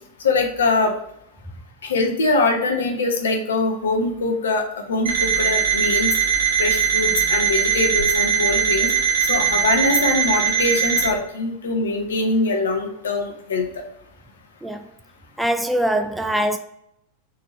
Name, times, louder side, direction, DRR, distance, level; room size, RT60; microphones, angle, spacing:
voice 1, 0.2-0.9 1.8-6.1 6.6-8.9 9.2-13.7, left 3 dB, 65° left, 0.8 m, -22 dB
Alarm, 5.1-11.1, right 8 dB, 65° right, 1.2 m, -20 dB
voice 2, 15.4-16.6, right 1 dB, 5° right, 0.3 m, -22 dB
3.9 x 2.9 x 3.9 m
figure-of-eight pair, 90°, 0 cm